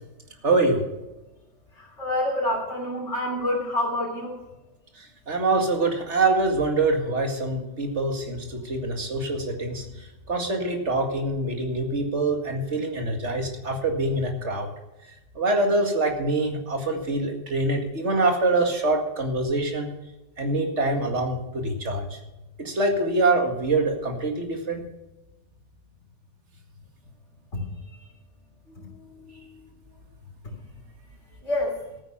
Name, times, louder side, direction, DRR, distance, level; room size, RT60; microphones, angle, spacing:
voice 1, 0.4-0.8 5.0-14.7 15.4-19.9 20.4-22.2 22.6-24.9 28.7-29.6, right 2 dB, 70° right, 3 dB, 2.4 m, -25 dB
voice 2, 1.7-4.4 27.5-28.1 28.8-28.9 30.6-30.7 31.4-31.8, left 1 dB, 80° left, -6 dB, 3.9 m, -28 dB
14.0 x 9.2 x 5.8 m, 1.0 s
omnidirectional pair, 1.2 m